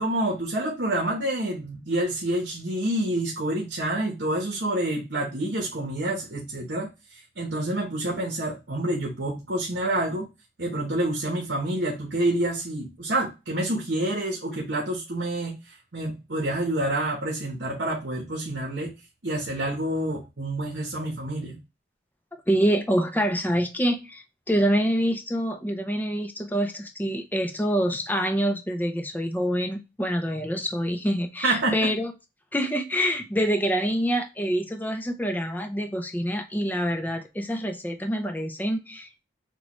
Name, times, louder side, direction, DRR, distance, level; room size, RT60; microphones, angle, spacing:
voice 1, 0.0-10.3 10.6-18.9 19.2-21.6 31.4-31.9, right 1 dB, 65° right, 1.1 m, -28 dB
voice 2, 22.5-32.1 32.5-39.2, equal, 10° left, 0.5 m, -26 dB
6.4 x 2.3 x 3.0 m
head